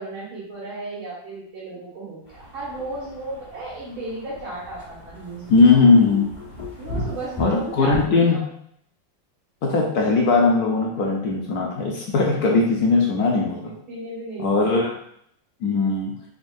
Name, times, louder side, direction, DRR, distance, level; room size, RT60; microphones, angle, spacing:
voice 1, 0.0-5.6 6.8-8.4 13.0-13.1 13.9-14.7, right 2 dB, 75° right, -7 dB, 2.4 m, -34 dB
sound 1, 2.3-8.0, equal, 30° left, 1.1 m, -36 dB
voice 2, 5.5-6.3 7.4-8.4 9.6-13.7 14.4-14.9 15.6-16.1, left 4 dB, 65° left, -1 dB, 0.9 m, -19 dB
4.4 x 3.8 x 2.6 m, 0.70 s
omnidirectional pair, 2.3 m